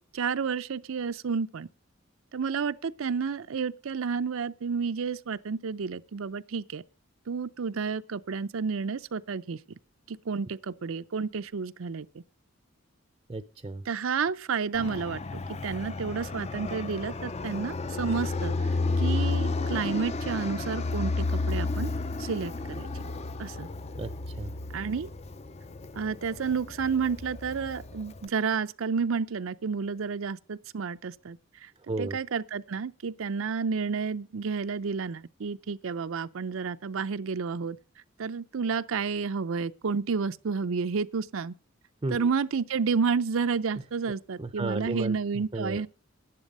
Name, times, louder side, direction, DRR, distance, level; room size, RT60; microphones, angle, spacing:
voice 1, 0.0-1.7 2.3-6.8 7.3-9.6 10.1-12.2 13.9-18.5 19.0-21.9 22.2-22.9 23.4-23.7 24.7-25.1 25.9-31.7 32.0-37.8 38.2-41.5 42.1-45.9, right 5 dB, 85° right, 0.5 m, -31 dB
voice 2, 13.3-13.8 24.0-24.5 31.9-32.2 42.0-42.3 44.4-45.8, right 2 dB, 25° right, 0.5 m, -34 dB
Fixed-wing aircraft airplane, 14.7-28.2, left 3 dB, 35° left, 0.6 m, -32 dB
11.0 x 10.5 x 5.3 m
head